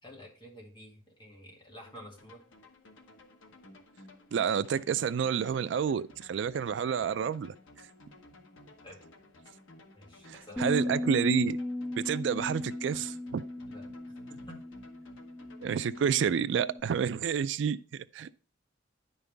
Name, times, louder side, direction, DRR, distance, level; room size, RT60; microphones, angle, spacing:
voice 1, 0.0-2.4 8.8-9.0 9.9-10.8 13.7-13.9 14.3-14.6, left 1 dB, 25° left, 2.0 m, -50 dB
sound 1, 1.8-16.1, left 1 dB, 80° left, 1.2 m, -55 dB
voice 2, 4.3-7.5 10.3-11.6 12.0-13.4 15.6-18.3, right 7 dB, 65° right, 0.3 m, -29 dB
Bass guitar, 10.6-16.8, left 1 dB, 10° left, 0.4 m, -37 dB
10.0 x 5.4 x 3.3 m
head